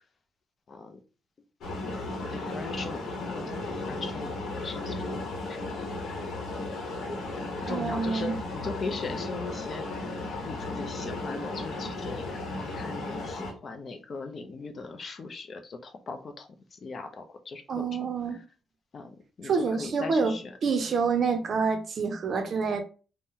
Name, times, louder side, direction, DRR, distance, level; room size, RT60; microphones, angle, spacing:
voice 1, 0.7-1.0 2.3-5.6 7.6-10.1 10.4-18.4 18.9-20.5, left 4 dB, 40° left, 0.4 m, -39 dB
sound 1, 1.6-13.5, left 2 dB, 75° left, 0.8 m, -35 dB
voice 2, 7.6-8.4 17.7-18.4 19.4-20.3 20.6-22.8, right 5 dB, 50° right, 0.5 m, -27 dB
2.7 x 2.0 x 3.6 m
cardioid pair, 125°, 0 cm